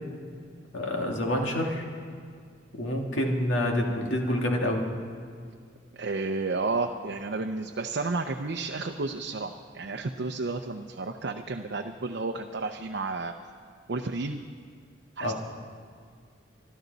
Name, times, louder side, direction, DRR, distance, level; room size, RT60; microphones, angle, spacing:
voice 1, 0.7-1.8 2.7-4.9 15.2-15.3, left 1 dB, 85° left, 1 dB, 2.1 m, -27 dB
voice 2, 5.9-13.4 13.9-14.4 15.2-15.3, right 3 dB, 60° right, 4 dB, 0.6 m, -32 dB
25.0 x 12.0 x 4.0 m, 2.2 s
head